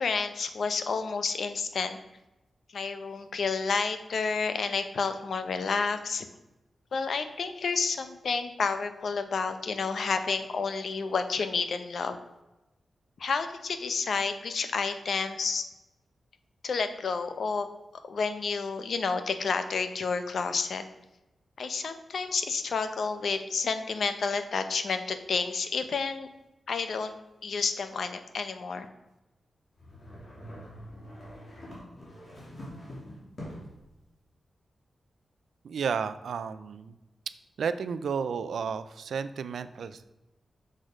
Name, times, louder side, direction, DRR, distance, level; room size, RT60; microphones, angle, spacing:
voice 1, 0.0-2.0 2.7-6.3 6.9-12.2 13.2-15.7 16.6-17.7 18.0-20.8 21.6-26.3 26.7-27.1 27.4-28.9, left 5 dB, 65° left, 9 dB, 0.7 m, -30 dB
sound 1, 29.8-33.8, equal, 40° left, 2.6 m, -44 dB
voice 2, 35.6-37.0 37.6-40.1, right 6 dB, 90° right, 13 dB, 0.4 m, -32 dB
6.4 x 6.4 x 5.0 m, 0.99 s
wide cardioid pair, 155°, 0 cm